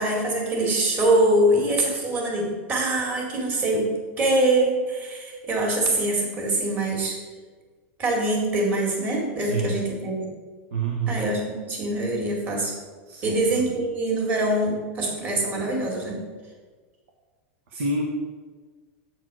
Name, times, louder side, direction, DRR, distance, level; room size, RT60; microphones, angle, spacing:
voice 1, 0.0-3.9 4.2-7.2 8.0-10.3 11.1-12.7 13.2-16.2, right 1 dB, 25° right, -1 dB, 2.0 m, -24 dB
voice 2, 9.4-9.8 10.7-11.2 13.1-13.8 17.7-18.0, right 4 dB, 85° right, -1 dB, 1.3 m, -28 dB
8.2 x 4.5 x 6.2 m, 1.4 s
supercardioid pair, 155°, 7 cm